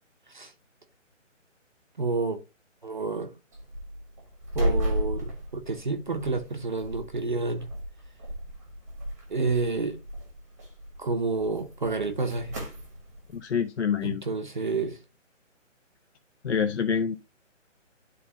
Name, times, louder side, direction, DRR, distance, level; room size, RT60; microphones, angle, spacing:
voice 1, 2.0-2.4 2.8-3.3 4.5-7.7 9.3-10.0 11.0-12.6 14.0-15.0, right 3 dB, 40° right, 0.7 m, -29 dB
sound 1, 3.5-13.4, equal, 15° right, 1.0 m, -34 dB
voice 2, 13.3-14.2 16.4-17.2, left 7 dB, 60° left, 0.7 m, -26 dB
11.0 x 3.9 x 2.7 m
hypercardioid pair, 170°, 39 cm